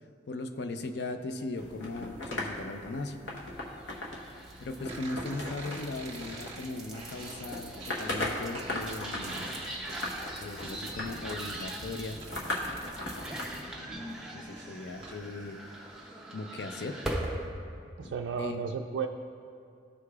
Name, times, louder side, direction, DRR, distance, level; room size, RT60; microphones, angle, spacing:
voice 1, 0.3-3.2 4.6-9.8 10.4-12.2 13.5-13.9 14.3-15.6 16.3-17.0 18.0-18.1 18.4-18.6, left 2 dB, 60° left, 8 dB, 0.4 m, -38 dB
sound 1, 1.6-13.6, left 1 dB, 80° left, 1.0 m, -39 dB
sound 2, 3.8-17.5, right 1 dB, 5° right, 0.6 m, -41 dB
sound 3, 4.9-13.2 13.5-15.2, right 2 dB, 30° right, 0.9 m, -47 dB
voice 2, 18.0-19.1, right 6 dB, 70° right, 3 dB, 0.3 m, -33 dB
14.0 x 4.8 x 2.3 m, 2.4 s
head